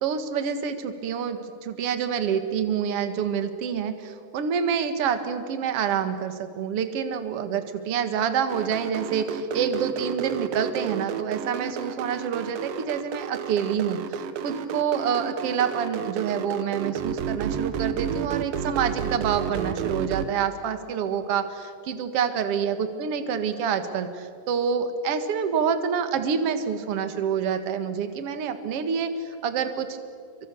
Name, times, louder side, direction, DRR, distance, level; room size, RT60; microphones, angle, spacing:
voice 1, 0.0-30.0, right 7 dB, 50° right, 8 dB, 2.0 m, -27 dB
sound 1, 8.5-20.3, right 8 dB, 70° right, 2.6 m, -31 dB
29.5 x 24.5 x 7.0 m, 2.2 s
omnidirectional pair, 4.6 m